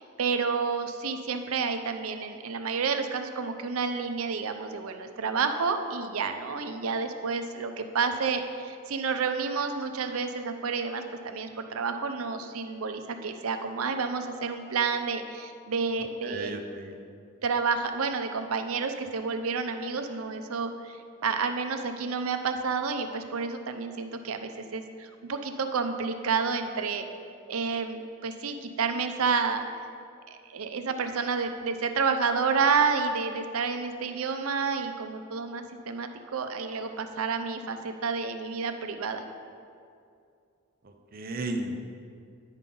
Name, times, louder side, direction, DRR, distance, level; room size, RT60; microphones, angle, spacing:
voice 1, 0.0-16.6 17.4-21.0 21.2-27.1 27.5-29.6 30.5-39.2, right 5 dB, 85° right, 7 dB, 0.6 m, -30 dB
voice 2, 16.3-16.9 41.1-41.9, right 2 dB, 45° right, 4 dB, 0.6 m, -34 dB
9.7 x 5.3 x 3.8 m, 2.4 s
head